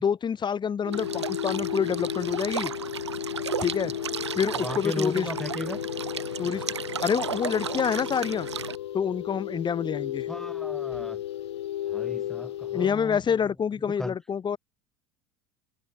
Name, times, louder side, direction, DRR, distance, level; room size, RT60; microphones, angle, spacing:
voice 1, 0.0-2.7 3.6-3.9 4.3-5.3 6.4-6.6 7.0-8.5 8.9-10.3 12.7-14.6, left 7 dB, 35° left, 6.9 m, -27 dB
sound 1, 0.8-12.9, left 12 dB, 80° left, 1.5 m, -33 dB
sound 2, 0.9-8.7, right 8 dB, 85° right, 1.7 m, -34 dB
voice 2, 4.5-5.8 10.3-11.2 11.8-13.4 14.0-14.1, left 1 dB, 5° left, 5.0 m, -36 dB
hypercardioid pair, 70°, 14 cm